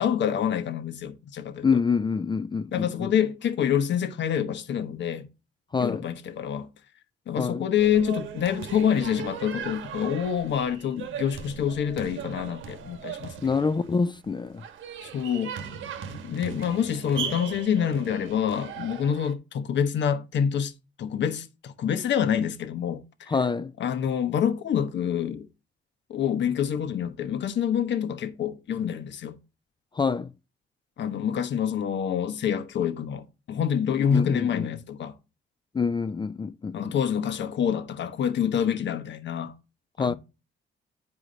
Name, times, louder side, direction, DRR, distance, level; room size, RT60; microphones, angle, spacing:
voice 1, 0.0-1.7 2.7-5.3 5.8-6.7 7.3-13.3 15.0-15.6 16.2-20.7 21.0-23.3 23.8-25.5 26.1-29.4 31.0-35.1 36.7-39.5 40.0-40.1, left 8 dB, 65° left, 1.2 m, -27 dB
voice 2, 1.6-3.1 5.7-6.1 7.4-7.7 13.4-14.6 23.3-23.7 29.9-30.3 34.1-34.7 35.7-36.9 40.0-40.1, left 5 dB, 25° left, 0.4 m, -26 dB
sound 1, 7.8-19.3, right 8 dB, 80° right, 1.2 m, -38 dB
9.8 x 4.9 x 3.9 m
cardioid pair, 90°, 20 cm